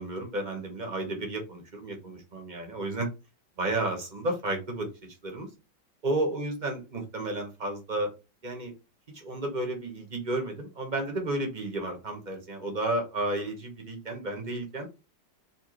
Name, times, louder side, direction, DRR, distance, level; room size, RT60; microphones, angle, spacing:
voice 1, 0.0-3.1 3.6-5.5 6.0-8.1 8.4-8.7 9.1-14.9, right 2 dB, 35° right, 3 dB, 0.8 m, -32 dB
4.3 x 2.7 x 3.0 m, 0.28 s
omnidirectional pair, 1.9 m